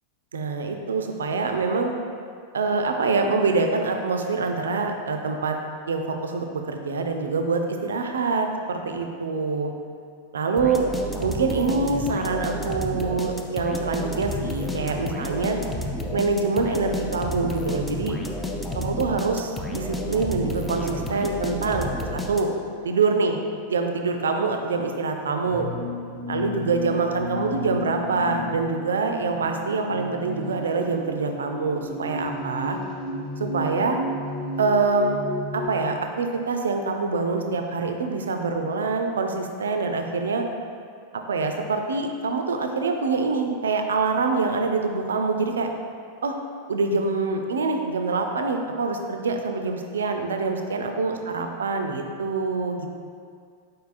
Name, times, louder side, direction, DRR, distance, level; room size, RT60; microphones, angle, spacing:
voice 1, 0.3-1.9 2.5-5.6 5.9-9.7 10.3-10.8 11.2-15.6 16.1-18.2 18.7-22.6 22.8-23.4 23.7-25.7 26.3-32.8 33.4-34.0 34.6-35.2 35.5-40.4 41.3-45.7 46.2-46.3 46.7-52.9, right 4 dB, 70° right, 4 dB, 0.3 m, -25 dB
sound 1, 10.6-22.8, left 1 dB, 10° left, 0.4 m, -31 dB
sound 2, 25.5-35.7, left 2 dB, 35° left, 1.0 m, -33 dB
4.6 x 4.5 x 2.4 m, 2.2 s
figure-of-eight pair, 90°, 0 cm